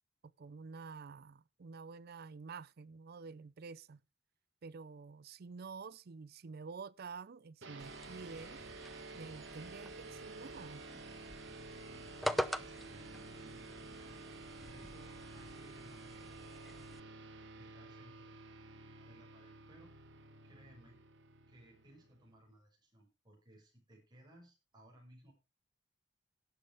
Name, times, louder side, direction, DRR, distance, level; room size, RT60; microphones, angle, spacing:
voice 1, 0.4-4.0 4.6-8.6 9.1-10.8, right 5 dB, 55° right, 0.5 m, -49 dB
sound 1, 7.6-22.4, right 3 dB, 70° right, 1.7 m, -51 dB
sound 2, 7.8-17.0, equal, ahead, 0.6 m, -45 dB
voice 2, 12.7-16.9 17.2-19.9 20.4-21.0 21.5-25.3, right 1 dB, 25° right, 6.2 m, -62 dB
18.0 x 7.7 x 3.4 m
head